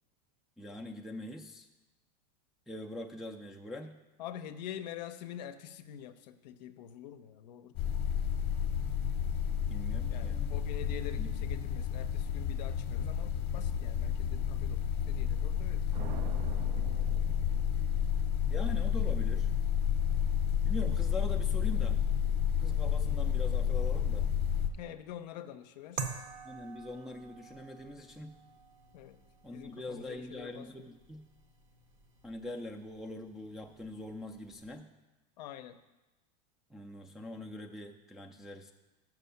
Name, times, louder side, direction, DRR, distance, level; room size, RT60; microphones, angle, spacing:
voice 1, 0.6-1.7 2.7-3.9 9.7-10.5 11.2-11.3 18.5-19.5 20.6-22.0 22.6-24.3 26.4-28.4 29.4-31.3 32.2-34.9 36.7-38.7, left 1 dB, ahead, 0 dB, 0.3 m, -43 dB
voice 2, 4.2-7.8 10.1-15.8 24.8-26.1 28.9-29.2 29.5-30.9 35.4-35.8, left 10 dB, 80° left, 9 dB, 0.5 m, -46 dB
sound 1, 7.7-24.7, left 8 dB, 50° left, 0.8 m, -31 dB
sound 2, 15.9-18.2, right 6 dB, 75° right, 0.7 m, -45 dB
sound 3, 26.0-34.8, right 5 dB, 35° right, 0.8 m, -48 dB
6.3 x 6.1 x 5.6 m, 1.1 s
supercardioid pair, 125°, 21 cm